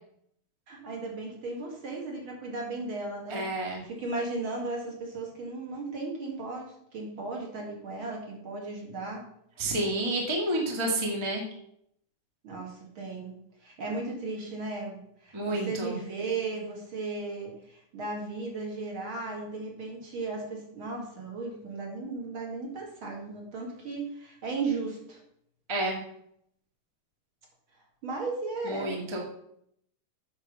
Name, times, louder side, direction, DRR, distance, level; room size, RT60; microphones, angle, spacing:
voice 1, 0.7-3.5 3.8-9.3 12.4-13.3 13.6-25.2 28.0-29.2, right 3 dB, 40° right, 0 dB, 2.4 m, -36 dB
voice 2, 3.3-3.8 9.6-11.4 15.3-16.0 25.7-26.0 28.6-29.2, right 1 dB, 25° right, 0 dB, 0.6 m, -29 dB
8.5 x 6.3 x 5.7 m, 0.71 s
omnidirectional pair, 4.1 m